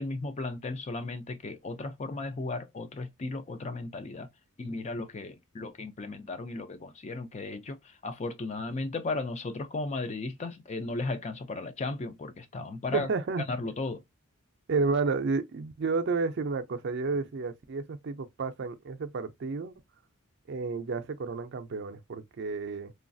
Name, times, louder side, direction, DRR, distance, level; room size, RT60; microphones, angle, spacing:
voice 1, 0.0-4.3 4.6-13.1 13.5-14.0, left 3 dB, 30° left, 0.4 m, -35 dB
voice 2, 12.9-13.4 14.7-19.7 20.5-22.9, right 4 dB, 55° right, 0.4 m, -31 dB
3.1 x 2.3 x 2.5 m
head